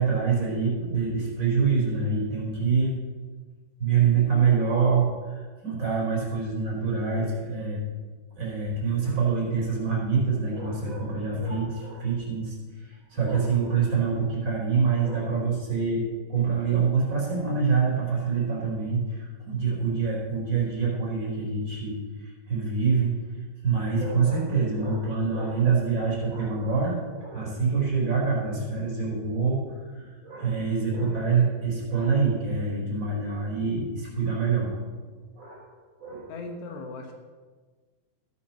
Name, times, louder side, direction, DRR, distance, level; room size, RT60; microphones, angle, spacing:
voice 1, 0.0-3.0 3.8-7.8 8.4-12.5 12.8-16.0 16.3-23.1 23.6-34.7 35.4-35.7 36.0-36.3, right 5 dB, 30° right, -4 dB, 4.4 m, -25 dB
voice 2, 36.3-37.1, left 3 dB, 75° left, 3 dB, 3.4 m, -38 dB
14.5 x 12.0 x 4.4 m, 1.4 s
omnidirectional pair, 5.0 m